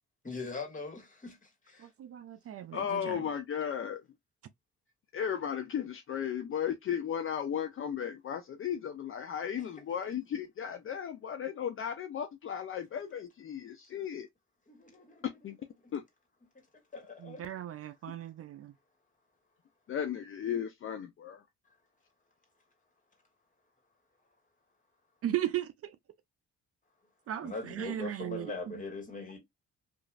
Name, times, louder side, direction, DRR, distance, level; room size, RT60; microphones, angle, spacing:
voice 1, 0.2-1.9 14.7-15.4 15.8-16.0 16.7-17.4 27.4-29.4, left 3 dB, 25° left, 1.6 m, -42 dB
voice 2, 1.8-3.2 17.2-18.7 25.2-25.9 27.3-28.7, right 12 dB, 50° right, 0.4 m, -37 dB
voice 3, 2.7-4.0 5.1-14.3 15.4-15.6 15.9-16.0 19.9-21.4, left 8 dB, 45° left, 0.5 m, -35 dB
3.0 x 2.5 x 2.3 m
cardioid pair, 90°, 30 cm